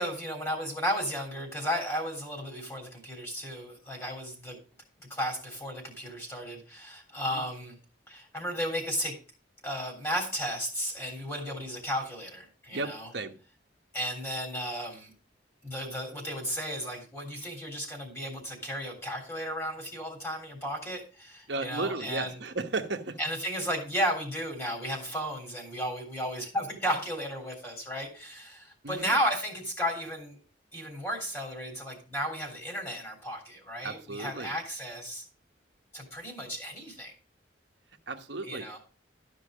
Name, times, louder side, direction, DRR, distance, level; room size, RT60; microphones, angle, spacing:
voice 1, 0.0-4.6 5.1-7.8 8.1-9.2 9.6-13.1 13.9-15.1 15.6-22.4 23.2-30.4 30.7-35.2 35.9-37.1 38.5-38.8, equal, 15° left, 1 dB, 3.5 m, -34 dB
voice 2, 12.7-13.3 21.5-23.2 28.8-29.1 33.8-34.5 38.1-38.7, right 3 dB, 65° right, 5 dB, 1.1 m, -34 dB
13.0 x 5.4 x 5.0 m, 0.38 s
head